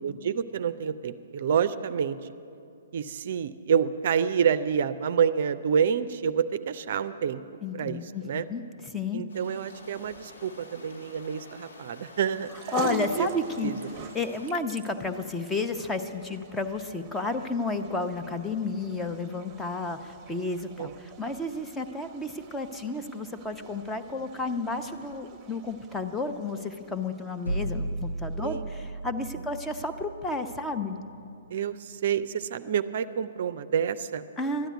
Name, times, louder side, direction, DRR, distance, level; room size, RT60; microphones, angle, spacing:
voice 1, 0.0-2.2 2.9-7.4 7.7-8.5 9.1-13.3 13.6-13.8 20.8-20.9 28.4-28.7 31.5-34.3, right 7 dB, 55° right, 12 dB, 0.4 m, -28 dB
voice 2, 7.6-9.2 12.7-13.7 14.1-31.0 34.4-34.7, left 3 dB, 10° left, 6 dB, 0.7 m, -32 dB
sound 1, 9.3-14.5, left 2 dB, 65° left, 2.3 m, -49 dB
sound 2, 12.3-28.8, right 3 dB, 25° right, 0.9 m, -44 dB
sound 3, 27.4-31.3, right 2 dB, 85° left, 0.6 m, -35 dB
13.0 x 10.0 x 8.1 m, 2.6 s
figure-of-eight pair, 120°, 0 cm